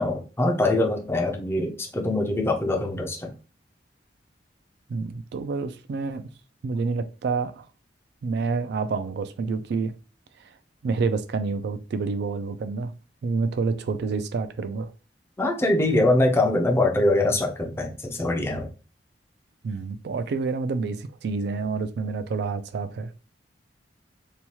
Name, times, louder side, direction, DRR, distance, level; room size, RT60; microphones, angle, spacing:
voice 1, 0.0-3.3 15.4-18.7, left 2 dB, 15° left, 0.4 m, -23 dB
voice 2, 4.9-6.3 6.6-7.7 8.2-9.9 10.4-10.5 10.8-12.9 13.2-14.9 19.6-23.1, right 4 dB, 65° right, 0.3 m, -28 dB
2.8 x 2.3 x 2.9 m
head